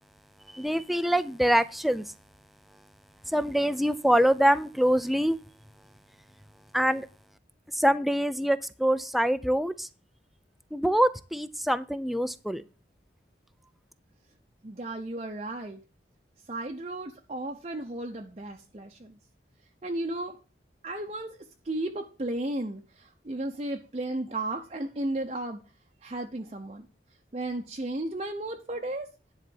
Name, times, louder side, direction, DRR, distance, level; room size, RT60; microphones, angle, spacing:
voice 1, 0.5-2.1 3.3-5.4 6.7-7.1 7.7-9.9 10.7-12.6, equal, ahead, 0.4 m, -25 dB
voice 2, 14.6-15.8 16.5-19.2 19.8-20.4 20.8-25.6 26.0-26.9 27.3-29.1, right 1 dB, 35° right, 0.7 m, -34 dB
10.5 x 4.0 x 7.0 m
head